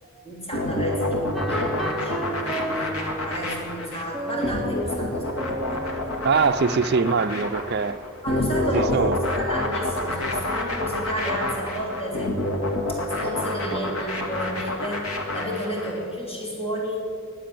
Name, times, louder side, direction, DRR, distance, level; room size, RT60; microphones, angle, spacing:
voice 1, 0.0-6.2 7.1-7.2 8.2-12.4 12.9-17.0, equal, 25° left, 3.2 m, -32 dB
sound 1, 0.5-15.9, left 1 dB, 70° left, 2.0 m, -28 dB
sound 2, 1.3-7.5, right 1 dB, ahead, 0.8 m, -34 dB
voice 2, 6.2-8.0 8.7-9.2, right 5 dB, 50° right, 0.5 m, -22 dB
21.0 x 7.6 x 7.6 m
head